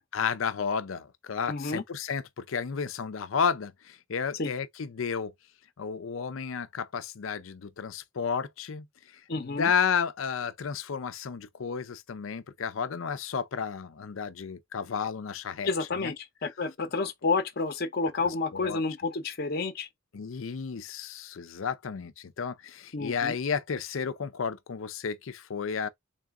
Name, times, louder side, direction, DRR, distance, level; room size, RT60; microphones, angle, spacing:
voice 1, 0.1-5.3 5.8-8.8 9.3-16.1 18.3-18.8 20.1-25.9, left 6 dB, 90° left, 0.5 m, -32 dB
voice 2, 1.5-1.8 4.4-4.5 9.3-9.7 15.6-19.9 22.9-23.3, left 3 dB, 50° left, 0.7 m, -30 dB
3.8 x 2.4 x 3.5 m
head